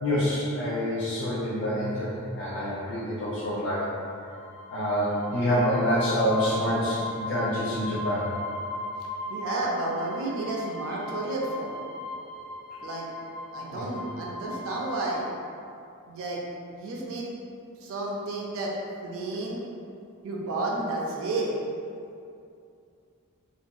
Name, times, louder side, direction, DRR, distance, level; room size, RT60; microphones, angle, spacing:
voice 1, 0.0-3.9 4.7-8.3 13.7-13.9, equal, 55° left, -9 dB, 0.5 m, -27 dB
sound 1, 4.3-15.1, left 2 dB, 85° left, 0.7 m, -38 dB
voice 2, 9.3-11.8 12.8-13.1 13.5-15.2 16.1-16.4 16.7-17.3 17.8-18.7 19.0-19.6 20.2-21.5, right 2 dB, 65° right, -3 dB, 0.4 m, -31 dB
2.7 x 2.5 x 2.2 m, 2.5 s
head